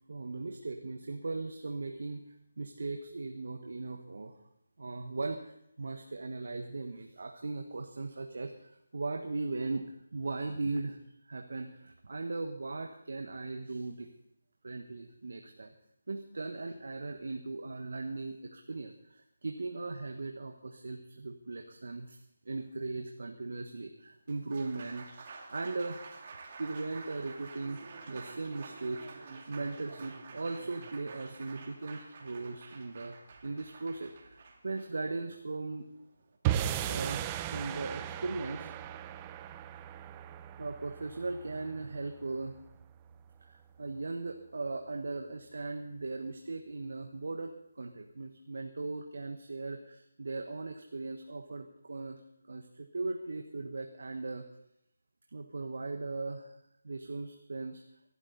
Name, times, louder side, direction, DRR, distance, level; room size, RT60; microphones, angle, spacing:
voice 1, 0.1-4.4 4.8-11.0 11.3-14.1 14.6-15.7 16.1-22.2 22.4-26.1 26.6-35.9 36.8-38.7 40.6-42.6 43.4-52.2 52.5-54.4 55.3-56.6 56.8-57.8, right 3 dB, 65° right, 5 dB, 1.3 m, -38 dB
Applause, 24.1-36.4, right 4 dB, 40° right, 2.6 m, -49 dB
sound 1, 36.4-42.8, right 11 dB, 20° right, 0.6 m, -37 dB
23.0 x 12.5 x 4.1 m, 0.78 s
figure-of-eight pair, 155°, 0 cm